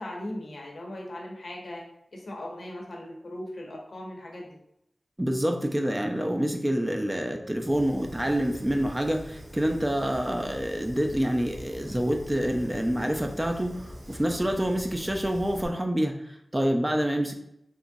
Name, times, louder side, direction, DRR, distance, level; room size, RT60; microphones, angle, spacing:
voice 1, 0.0-1.9 2.1-4.6, left 1 dB, 70° left, 0 dB, 0.8 m, -38 dB
voice 2, 5.2-17.3, equal, 15° right, 3 dB, 0.4 m, -27 dB
Fire, 7.7-15.7, equal, 85° right, 1.3 m, -44 dB
3.7 x 2.9 x 2.6 m, 0.79 s
wide cardioid pair, 85°, 0 cm